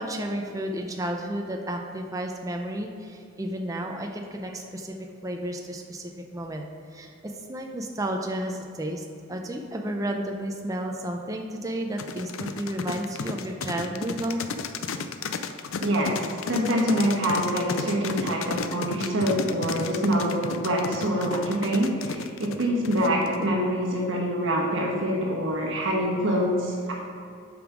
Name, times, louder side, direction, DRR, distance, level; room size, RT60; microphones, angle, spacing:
voice 1, 0.0-4.9 5.2-6.6 6.9-14.5, right 1 dB, 15° right, 2 dB, 0.5 m, -32 dB
sound 1, 12.0-23.4, left 5 dB, 70° left, 0.5 m, -33 dB
voice 2, 15.8-26.9, equal, 60° right, -2 dB, 1.3 m, -25 dB
7.9 x 5.2 x 5.0 m, 2.5 s
head